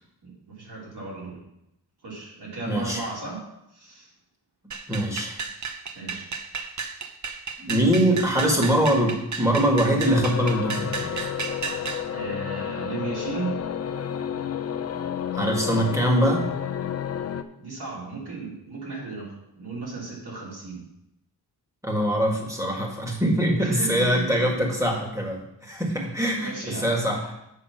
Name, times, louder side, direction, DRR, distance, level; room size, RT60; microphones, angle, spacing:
voice 1, 0.2-1.4 2.0-3.4 3.7-4.1 5.9-6.3 12.1-13.6 17.6-20.8 23.6-24.5 25.9-26.1 26.4-26.9, right 3 dB, 75° right, -5 dB, 3.7 m, -35 dB
voice 2, 2.7-3.1 4.9-5.4 7.6-11.3 15.3-16.5 21.8-27.3, equal, 10° right, 0 dB, 1.7 m, -23 dB
sound 1, 4.7-12.1, right 5 dB, 50° right, 0.7 m, -33 dB
sound 2, 10.0-17.4, left 8 dB, 40° left, 0.5 m, -31 dB
7.6 x 6.0 x 5.7 m, 0.84 s
wide cardioid pair, 150°, 39 cm